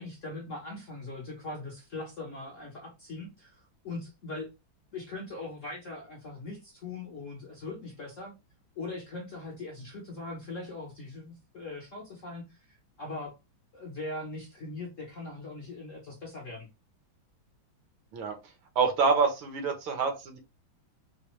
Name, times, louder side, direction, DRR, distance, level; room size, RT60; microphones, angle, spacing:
voice 1, 0.0-4.5 4.9-8.3 8.8-13.3 13.7-16.7, left 2 dB, 50° left, 0.9 m, -41 dB
voice 2, 18.7-20.4, right 5 dB, 75° right, 1.6 m, -26 dB
5.0 x 2.1 x 3.0 m
omnidirectional pair, 2.3 m